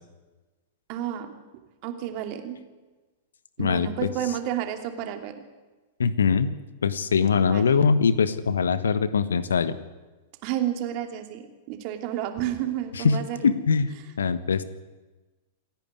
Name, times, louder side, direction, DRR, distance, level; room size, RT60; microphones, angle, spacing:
voice 1, 0.9-1.4 1.8-2.6 3.6-5.4 7.4-7.9 10.4-13.5, right 11 dB, 45° right, 6 dB, 2.8 m, -31 dB
voice 2, 3.6-3.9 6.0-6.5 6.8-9.8 13.0-13.2 13.4-14.6, left 5 dB, 75° left, 15 dB, 1.2 m, -22 dB
27.5 x 10.5 x 9.5 m, 1.2 s
figure-of-eight pair, 100°, 0 cm